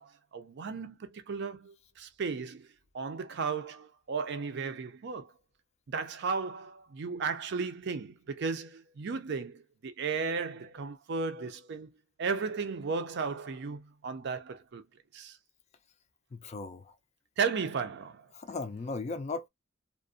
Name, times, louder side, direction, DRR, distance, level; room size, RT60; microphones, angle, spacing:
voice 1, 0.0-2.7 2.9-5.3 5.9-11.9 12.2-14.8 15.1-15.4 17.4-18.3, right 5 dB, 55° right, 0.5 m, -35 dB
voice 2, 16.3-16.8 18.3-19.5, left 3 dB, 35° left, 0.3 m, -37 dB
2.4 x 2.1 x 2.5 m
head